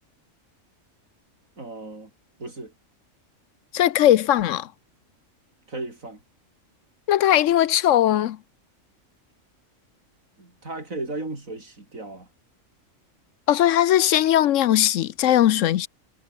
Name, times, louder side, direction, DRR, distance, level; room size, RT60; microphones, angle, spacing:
voice 1, 1.6-2.1 2.4-2.7 5.7-6.2 10.4-12.3, right 2 dB, 80° right, 5.7 m, -35 dB
voice 2, 3.7-4.7 7.1-8.4 13.5-15.9, left 12 dB, 75° left, 1.0 m, -19 dB
omnidirectional pair, 1.4 m